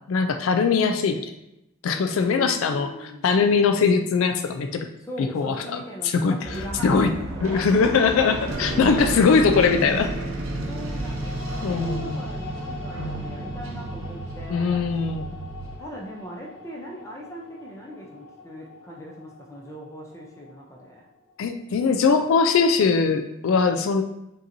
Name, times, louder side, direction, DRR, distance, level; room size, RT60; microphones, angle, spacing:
voice 1, 0.1-1.3 1.8-4.9 5.3-5.8 6.1-6.3 6.8-7.1 7.4-10.1 11.6-12.2 13.0-13.3 14.5-15.2 21.4-24.0, left 5 dB, 85° left, 7 dB, 0.3 m, -21 dB
voice 2, 1.9-3.2 5.0-8.5 10.7-14.9 15.8-21.1, right 1 dB, 15° left, -1 dB, 0.5 m, -40 dB
sound 1, 6.4-15.8, right 2 dB, 85° right, 0.6 m, -32 dB
sound 2, 9.4-21.6, left 3 dB, 60° left, 0.8 m, -44 dB
5.2 x 2.8 x 2.6 m, 0.85 s
head